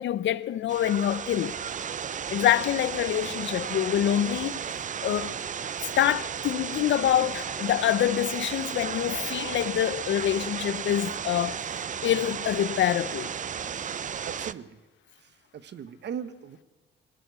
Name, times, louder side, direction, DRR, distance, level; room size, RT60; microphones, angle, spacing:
voice 1, 0.0-1.5 2.3-4.6 5.0-5.3 6.0-13.3, left 11 dB, 70° left, 0.8 m, -26 dB
sound 1, 0.7-14.5, right 7 dB, 40° right, 0.6 m, -34 dB
voice 2, 14.2-14.8 15.5-16.6, right 8 dB, 60° right, 1.2 m, -38 dB
21.0 x 17.0 x 8.2 m
cardioid pair, 90°, 20 cm